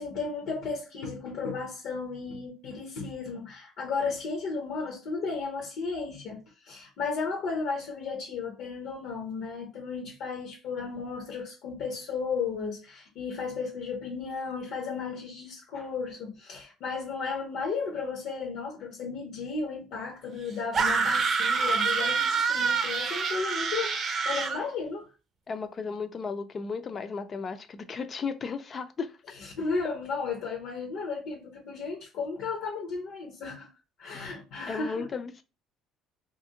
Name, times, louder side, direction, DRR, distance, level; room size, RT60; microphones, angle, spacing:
voice 1, 0.0-25.1 29.4-33.7 34.0-35.1, left 4 dB, 70° left, 0.7 m, -34 dB
sound 1, 20.7-24.6, right 5 dB, 40° right, 0.6 m, -26 dB
voice 2, 25.5-29.4 34.7-35.4, left 5 dB, 35° left, 0.4 m, -35 dB
2.7 x 2.5 x 2.7 m
cardioid pair, 115°, 0 cm